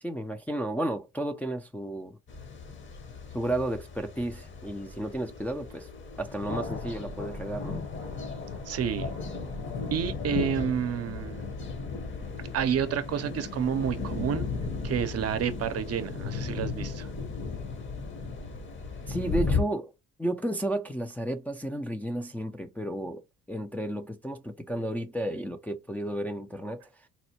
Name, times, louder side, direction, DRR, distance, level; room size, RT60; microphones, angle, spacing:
voice 1, 0.0-2.2 3.3-5.9 6.2-7.9 19.1-19.9 20.2-26.9, right 1 dB, 5° left, 0.3 m, -32 dB
sound 1, 2.3-19.6, left 4 dB, 40° left, 0.9 m, -35 dB
voice 2, 8.7-9.2 9.9-11.4 12.5-14.5 14.8-17.1, right 8 dB, 55° right, 0.6 m, -29 dB
4.1 x 2.1 x 2.8 m
cardioid pair, 90°, 30 cm